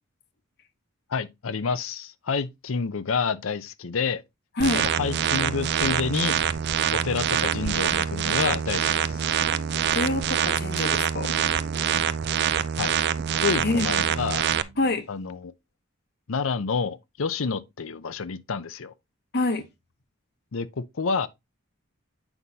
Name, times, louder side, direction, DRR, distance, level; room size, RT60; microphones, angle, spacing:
voice 1, 1.1-4.2 4.8-6.4 6.9-9.2 12.8-13.0 13.4-14.4 15.1-15.5 16.3-18.9 20.5-21.3, left 5 dB, 75° left, 0.6 m, -29 dB
voice 2, 4.6-4.9 9.7-11.3 13.6-13.9 14.8-15.1 19.3-19.6, left 2 dB, 50° left, 1.0 m, -26 dB
sound 1, 4.6-14.6, right 8 dB, 55° right, 0.4 m, -25 dB
sound 2, 9.2-10.3 11.2-12.3 13.2-13.8 14.5-15.1, right 2 dB, 70° right, 1.2 m, -46 dB
8.0 x 5.4 x 2.8 m
head